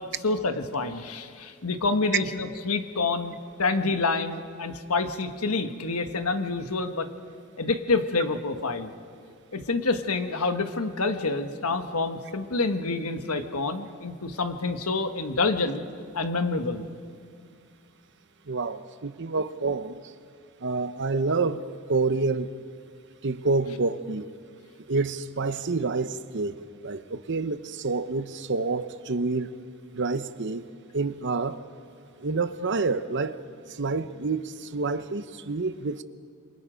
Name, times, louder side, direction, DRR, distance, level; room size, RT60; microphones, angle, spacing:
voice 1, 0.0-7.1 7.6-8.9 9.5-15.9 16.1-16.9, left 3 dB, 90° left, 8 dB, 1.4 m, -27 dB
voice 2, 18.5-20.1 20.6-21.6 21.9-22.5 23.2-24.3 24.9-29.6 29.9-30.6 30.9-31.6 32.2-33.4 33.7-36.0, right 3 dB, 55° right, 12 dB, 0.8 m, -28 dB
27.5 x 23.5 x 5.2 m, 2.4 s
head